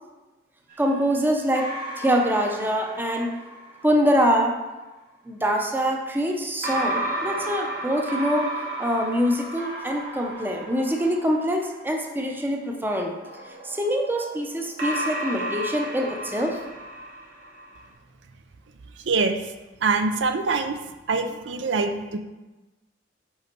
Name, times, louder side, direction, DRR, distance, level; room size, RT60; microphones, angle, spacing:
sound 1, 0.7-4.1 6.6-12.1 13.2-17.8, right 1 dB, 50° right, 1.6 m, -33 dB
voice 1, 0.8-1.7 2.0-3.3 3.8-4.5 5.3-8.5 8.8-13.1 13.6-16.6, equal, 10° right, 2 dB, 0.6 m, -24 dB
voice 2, 19.0-19.5 19.8-20.8 21.1-22.2, right 4 dB, 75° right, 7 dB, 0.5 m, -24 dB
5.6 x 5.1 x 4.5 m, 1.1 s
head